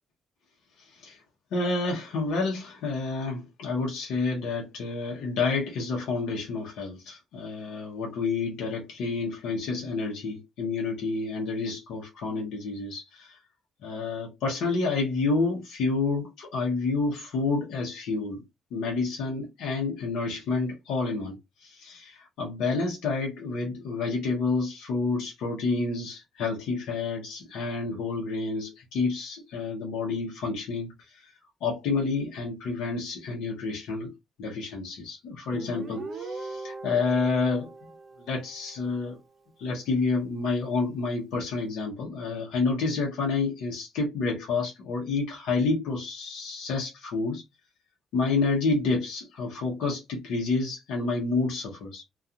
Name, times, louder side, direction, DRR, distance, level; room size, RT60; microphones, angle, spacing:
voice 1, 1.5-13.4 13.8-18.4 18.7-31.3 31.6-34.1 34.4-37.7 38.2-39.2 39.6-47.4 48.1-52.0, left 3 dB, 85° left, 0.8 m, -29 dB
Guitar, 35.5-39.0, right 3 dB, 45° right, 0.6 m, -40 dB
2.4 x 2.3 x 2.7 m
cardioid pair, 90°, 0 cm